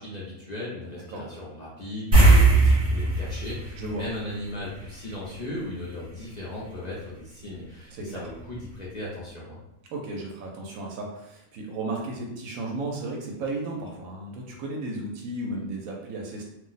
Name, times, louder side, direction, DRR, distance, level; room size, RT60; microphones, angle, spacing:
voice 1, 0.0-9.6, left 1 dB, 50° left, -7 dB, 0.5 m, -37 dB
sound 1, 2.1-4.9 5.2-5.4 8.3-8.4 8.7-8.8, right 2 dB, 30° right, 1.1 m, -19 dB
voice 2, 7.9-8.3 9.9-16.4, right 2 dB, 80° right, 0 dB, 1.0 m, -34 dB
2.5 x 2.0 x 3.8 m, 0.88 s
omnidirectional pair, 1.4 m